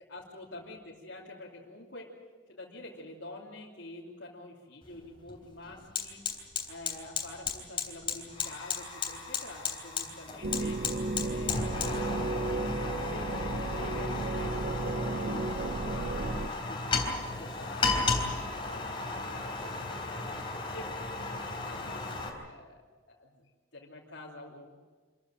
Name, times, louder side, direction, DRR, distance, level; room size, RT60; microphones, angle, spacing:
voice 1, 0.0-2.1 2.5-6.2 6.7-10.8 11.2-15.5 15.9-18.2 18.5-22.0 22.4-22.7 23.1-23.4 23.7-24.7, left 2 dB, 80° left, -5 dB, 3.1 m, -47 dB
Fire, 4.8-4.9 5.3-22.3, left 4 dB, 25° left, 3.6 m, -34 dB
sound 1, 10.4-16.5, right 2 dB, 50° right, 0.6 m, -33 dB
27.0 x 14.5 x 9.1 m, 1.5 s
head